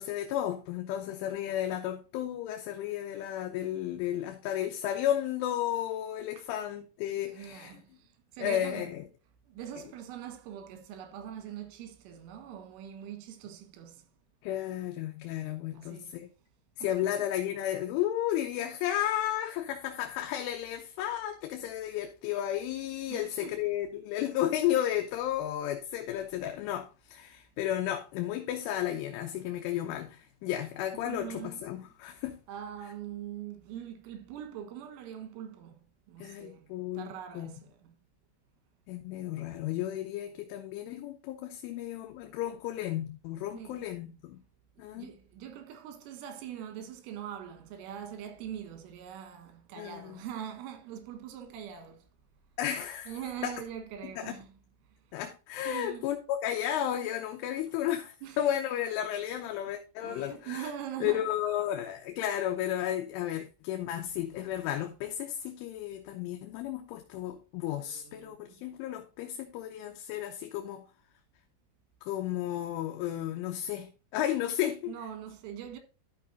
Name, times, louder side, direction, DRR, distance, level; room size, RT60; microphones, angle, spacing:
voice 1, 0.0-7.8 8.4-9.0 14.4-16.3 16.8-32.4 36.2-37.5 38.9-44.4 44.8-45.1 49.8-50.2 52.6-53.1 53.4-53.6 54.2-54.4 55.1-60.7 61.0-70.8 72.0-74.9, left 11 dB, 85° left, 3.3 m, -33 dB
voice 2, 7.2-8.9 9.5-14.0 15.7-16.2 16.8-17.2 23.1-23.6 31.0-31.6 32.5-35.8 36.1-36.7 37.0-38.0 43.6-43.8 44.8-52.1 53.1-54.5 55.7-56.0 58.2-58.4 60.0-61.3 67.7-68.6 74.9-75.8, right 9 dB, 80° right, 3.9 m, -43 dB
12.5 x 6.4 x 2.6 m
omnidirectional pair, 5.6 m